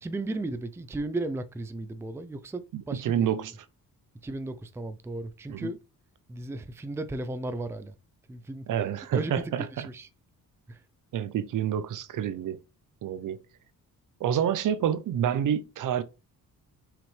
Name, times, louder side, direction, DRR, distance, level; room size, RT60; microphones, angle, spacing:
voice 1, 0.0-3.3 4.2-5.8 6.3-7.9 8.3-8.7 9.1-10.1 10.7-10.8, right 2 dB, 5° right, 0.4 m, -35 dB
voice 2, 2.7-3.5 5.5-5.7 8.7-9.9 11.1-12.6 13.0-13.4 14.2-16.0, right 9 dB, 60° right, 0.7 m, -28 dB
6.2 x 5.0 x 3.3 m
wide cardioid pair, 160°, 35 cm